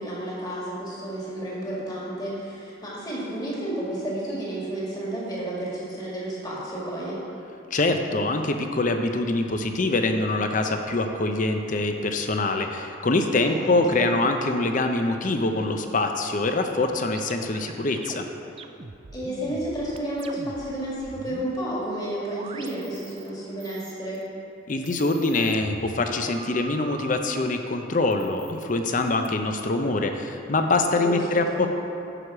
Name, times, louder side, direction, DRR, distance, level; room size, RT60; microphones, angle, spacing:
voice 1, 0.0-7.2 13.4-14.1 19.1-24.2 31.0-31.7, right 1 dB, 20° left, -6 dB, 2.0 m, -31 dB
voice 2, 7.7-18.2 24.7-31.7, left 2 dB, 40° left, 5 dB, 0.6 m, -24 dB
sound 1, 16.8-20.7 21.0-23.3 23.6-24.3 24.7-27.4 28.1-29.3, right 3 dB, 30° right, 0.3 m, -42 dB
9.9 x 4.8 x 6.0 m, 2.7 s
head